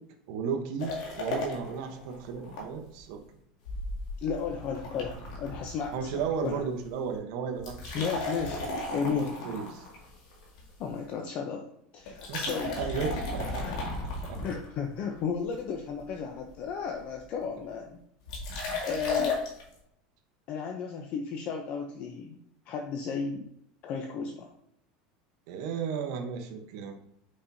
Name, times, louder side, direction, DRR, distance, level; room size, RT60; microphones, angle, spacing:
voice 1, 0.3-3.2 5.9-8.1 9.1-9.8 12.3-12.4 12.8-13.6 14.2-14.4 25.5-26.9, right 6 dB, 65° right, 4 dB, 1.0 m, -34 dB
sound 1, 0.8-2.6 3.0-3.1 3.6-6.5 6.8-7.1 7.5-10.9 12.1-15.0 15.5-16.0 16.3-16.4 16.6-17.2 18.3-19.6, left 2 dB, 85° left, 2.2 m, -35 dB
voice 2, 4.2-6.6 7.9-8.6 8.9-9.4 10.8-11.7 11.9-12.7 13.5-14.0 14.4-18.0 18.8-19.4 20.5-22.4 22.7-23.5 23.8-24.5, left 6 dB, 45° left, 3 dB, 0.7 m, -34 dB
6.8 x 5.4 x 2.7 m, 0.74 s
supercardioid pair, 150°, 3 cm